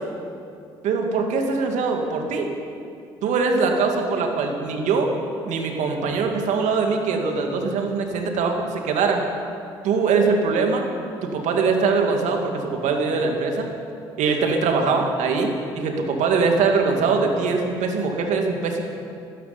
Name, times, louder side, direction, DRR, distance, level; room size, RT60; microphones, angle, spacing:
voice 1, 0.8-2.5 3.2-5.1 5.5-9.2 9.8-10.9 11.2-13.7 14.2-18.8, right 4 dB, 70° right, 3 dB, 2.3 m, -22 dB
13.0 x 11.5 x 9.6 m, 2.5 s
hypercardioid pair, 60°, 13 cm